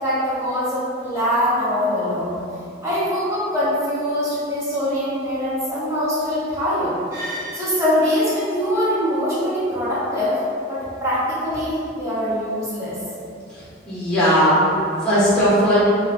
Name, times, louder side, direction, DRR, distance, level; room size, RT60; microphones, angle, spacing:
voice 1, 0.0-2.3 2.8-10.4 10.7-13.0, equal, 15° right, -11 dB, 1.1 m, -23 dB
voice 2, 13.5-15.8, equal, 5° left, -10 dB, 1.0 m, -18 dB
4.2 x 2.3 x 3.6 m, 2.6 s
head